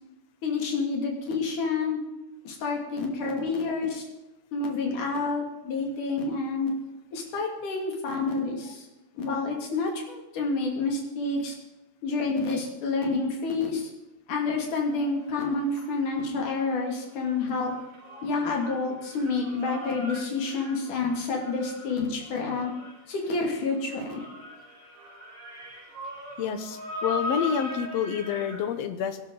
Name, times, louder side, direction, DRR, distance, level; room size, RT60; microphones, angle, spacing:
voice 1, 0.4-2.0 2.4-4.0 4.5-6.7 7.1-8.8 9.2-11.6 12.0-13.8 14.3-17.7 18.2-22.7 23.1-24.2, left 3 dB, 80° left, 1 dB, 4.2 m, -28 dB
sound 1, 14.9-16.9 17.2-28.7, left 1 dB, 65° right, 5.8 m, -40 dB
voice 2, 26.4-29.2, left 8 dB, 65° left, 9 dB, 2.0 m, -28 dB
23.0 x 11.5 x 4.0 m, 0.99 s
omnidirectional pair, 3.5 m